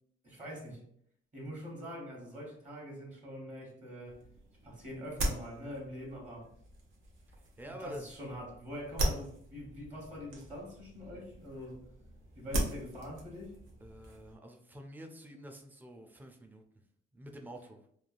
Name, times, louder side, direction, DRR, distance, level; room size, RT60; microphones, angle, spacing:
voice 1, 0.2-0.8 1.3-4.2 4.6-6.5 7.6-11.9 12.4-13.7, equal, 35° right, -2 dB, 1.2 m, -44 dB
sound 1, 4.0-14.4, right 1 dB, 85° right, 0.8 m, -40 dB
voice 2, 7.4-8.1 13.8-16.6 17.1-17.8, equal, 10° right, 4 dB, 0.4 m, -48 dB
3.1 x 2.3 x 2.5 m, 0.68 s
cardioid pair, 90°, 20 cm